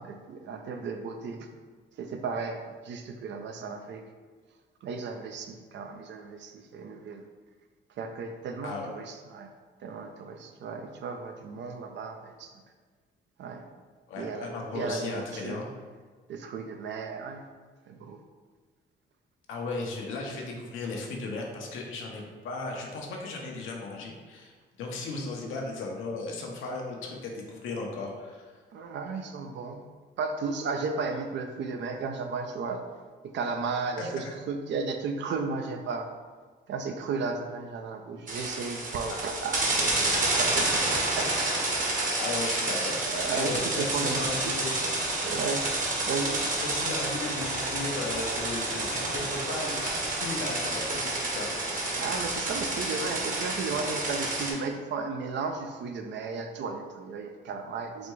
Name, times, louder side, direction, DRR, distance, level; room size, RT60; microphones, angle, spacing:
voice 1, 0.0-1.5 2.0-4.0 4.8-7.2 8.0-9.5 9.8-12.6 13.4-13.7 14.2-15.6 16.3-17.4 17.9-18.2 28.7-29.8 30.2-32.8 33.2-36.1 36.7-41.3 41.8-42.1 42.6-42.8 43.1-44.5 45.2-45.7 46.0-46.4 51.9-58.1, right 4 dB, 65° right, 5 dB, 0.5 m, -34 dB
voice 2, 14.1-15.7 19.5-28.5 34.0-34.1 42.2-44.8 46.6-51.8, left 3 dB, 85° left, 0 dB, 0.8 m, -36 dB
sound 1, 38.3-54.5, right 2 dB, 40° right, 1.0 m, -29 dB
4.2 x 2.2 x 4.5 m, 1.5 s
cardioid pair, 90°, 20 cm